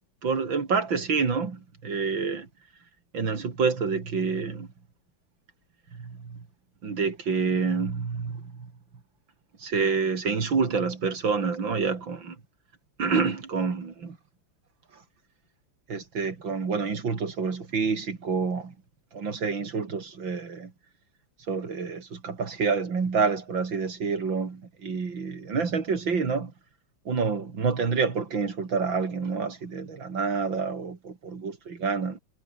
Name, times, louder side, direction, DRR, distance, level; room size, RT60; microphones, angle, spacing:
voice 1, 0.2-2.5 3.1-4.7 5.9-6.4 6.8-8.7 9.6-12.4 13.0-14.2 15.9-18.7 19.1-20.7 21.5-26.5 27.1-32.2, right 5 dB, 85° right, 3.7 m, -28 dB
omnidirectional pair, 2.1 m